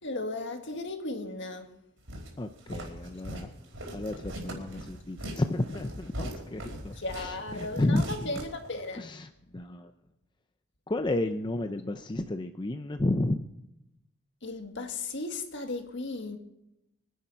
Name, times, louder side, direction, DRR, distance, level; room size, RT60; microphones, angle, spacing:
voice 1, 0.0-1.8 7.0-9.0 14.4-16.4, left 2 dB, 60° left, 1.8 m, -36 dB
Walk footsteps, 2.1-9.0, right 1 dB, 65° right, 4.6 m, -41 dB
voice 2, 2.4-3.5 3.9-8.1 9.0-9.9 10.9-13.5, left 2 dB, 20° left, 0.6 m, -32 dB
23.5 x 10.5 x 5.6 m
head